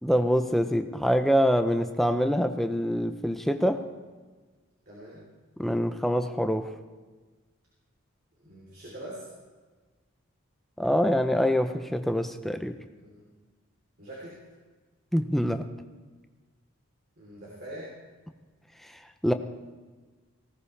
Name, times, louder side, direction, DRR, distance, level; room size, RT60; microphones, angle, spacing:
voice 1, 0.0-3.8 5.6-6.7 10.8-12.8 15.1-15.6 18.8-18.9 19.2-19.3, equal, ahead, 7 dB, 0.6 m, -25 dB
voice 2, 4.8-5.3 8.4-9.3 12.9-13.3 14.0-14.4 17.2-17.9, right 1 dB, 50° right, -6 dB, 3.5 m, -43 dB
19.0 x 17.0 x 3.3 m, 1.4 s
head